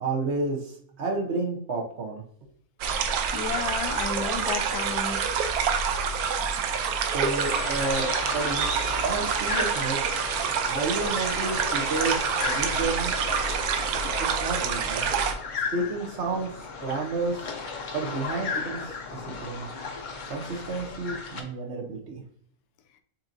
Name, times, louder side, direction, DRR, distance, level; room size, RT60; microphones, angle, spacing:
voice 1, 0.0-2.2 7.1-8.7 9.0-10.0 10.6-13.1 14.2-15.1 15.7-17.4 17.9-19.7 20.3-22.2, right 3 dB, 55° right, -1 dB, 1.0 m, -31 dB
sound 1, 2.8-15.4, right 6 dB, 80° right, 1.1 m, -27 dB
voice 2, 3.3-5.4, left 7 dB, 90° left, 8 dB, 1.1 m, -32 dB
sound 2, 7.4-21.4, left 4 dB, 70° left, 0.4 m, -35 dB
7.0 x 2.8 x 2.5 m, 0.63 s
omnidirectional pair, 1.6 m